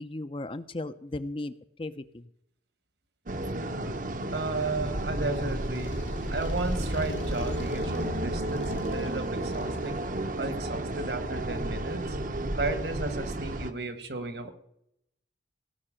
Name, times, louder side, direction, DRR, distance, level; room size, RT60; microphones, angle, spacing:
voice 1, 0.0-2.3, left 2 dB, 30° left, 12 dB, 0.6 m, -36 dB
sound 1, 3.3-13.7, right 1 dB, 45° right, 1.0 m, -32 dB
Motorcycle, 4.1-10.7, left 1 dB, 90° left, 1.8 m, -42 dB
voice 2, 4.3-6.0 6.3-10.0 10.4-12.2 12.6-14.5, right 3 dB, 60° right, 9 dB, 1.7 m, -34 dB
17.5 x 6.0 x 8.9 m, 0.75 s
head